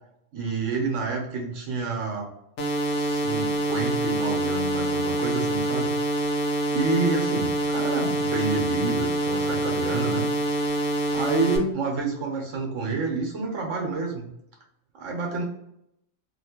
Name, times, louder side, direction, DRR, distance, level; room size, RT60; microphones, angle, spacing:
voice 1, 0.3-2.3 2.9-5.9 6.7-10.3 11.1-14.3 14.9-15.4, right 3 dB, 75° right, 1 dB, 1.3 m, -28 dB
sound 1, 2.6-11.6, right 1 dB, 70° left, 1.0 m, -26 dB
2.9 x 2.8 x 2.8 m, 0.79 s
omnidirectional pair, 1.3 m